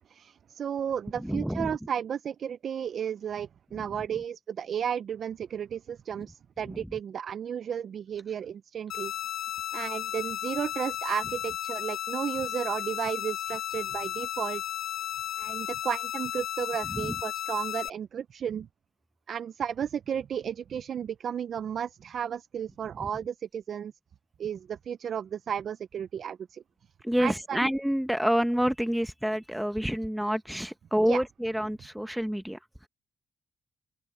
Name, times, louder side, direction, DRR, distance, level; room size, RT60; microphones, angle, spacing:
voice 1, 0.0-9.1 9.7-14.6 15.4-18.7 19.3-23.9 24.4-26.6 27.2-27.7 31.1-31.2, right 8 dB, 60° right, 0.6 m, -33 dB
voice 2, 1.2-1.8 6.7-6.9 16.9-17.1 23.0-23.1 27.0-32.6, equal, 5° right, 1.2 m, -28 dB
sound 1, 8.9-17.9, left 12 dB, 75° left, 1.4 m, -34 dB
open air
cardioid pair, 75°, 0 cm